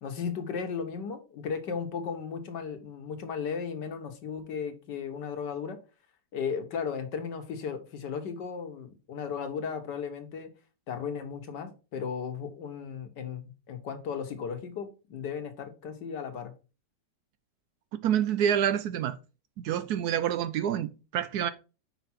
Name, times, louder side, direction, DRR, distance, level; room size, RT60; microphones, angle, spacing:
voice 1, 0.0-5.8 6.3-10.5 10.9-16.5, left 6 dB, 70° left, 1.6 m, -35 dB
voice 2, 17.9-19.2 19.6-21.5, right 9 dB, 70° right, 1.0 m, -27 dB
5.8 x 5.1 x 4.3 m
omnidirectional pair, 2.0 m